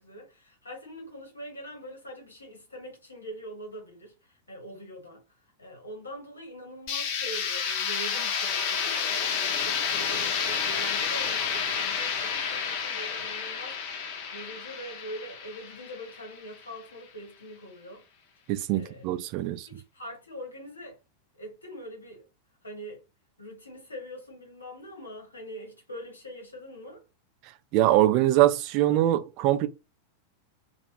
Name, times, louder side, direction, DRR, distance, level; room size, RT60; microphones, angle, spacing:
voice 1, 0.0-5.2 5.6-18.0 18.7-19.0 19.7-21.0 21.4-22.2 22.6-23.0 23.4-27.0, equal, 80° left, 1.1 m, -43 dB
sound 1, 6.9-16.6, left 7 dB, 45° left, 0.5 m, -30 dB
voice 2, 18.5-19.7 27.7-29.7, right 14 dB, 40° right, 0.3 m, -23 dB
2.2 x 2.0 x 3.1 m
figure-of-eight pair, 90°, 0 cm